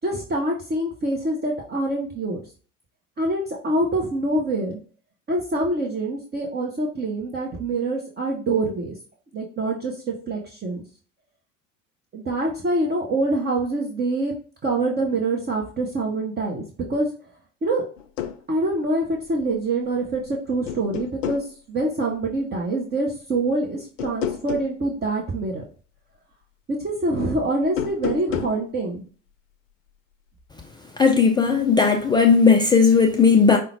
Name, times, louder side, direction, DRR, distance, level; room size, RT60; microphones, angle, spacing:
voice 1, 0.0-2.4 3.2-4.7 5.3-8.9 9.3-10.8 12.1-14.3 14.6-16.6 16.9-17.1 17.6-17.8 18.5-25.6 26.7-29.0, right 2 dB, 25° right, 0.9 m, -25 dB
sound 1, 18.0-18.4 19.9-20.3 20.7-21.5 24.0-24.8 27.6-28.6, left 9 dB, 75° left, 0.6 m, -30 dB
voice 2, 31.0-33.6, left 5 dB, 10° left, 0.3 m, -16 dB
5.3 x 2.2 x 4.3 m
figure-of-eight pair, 70°, 39 cm